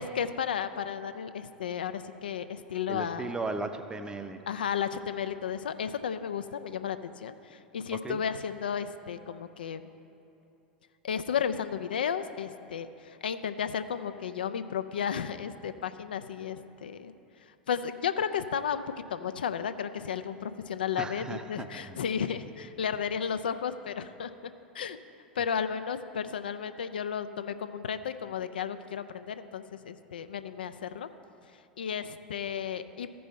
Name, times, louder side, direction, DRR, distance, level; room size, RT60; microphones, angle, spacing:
voice 1, 0.0-3.3 4.5-9.8 11.0-17.1 17.7-18.8 19.1-24.3 24.7-25.0 25.4-31.1 31.8-33.1, left 7 dB, 70° left, 11 dB, 0.4 m, -33 dB
voice 2, 2.9-4.4 7.9-8.2 21.0-22.0, right 3 dB, 15° right, 8 dB, 0.6 m, -36 dB
14.5 x 5.4 x 4.2 m, 2.9 s
figure-of-eight pair, 80°, 5 cm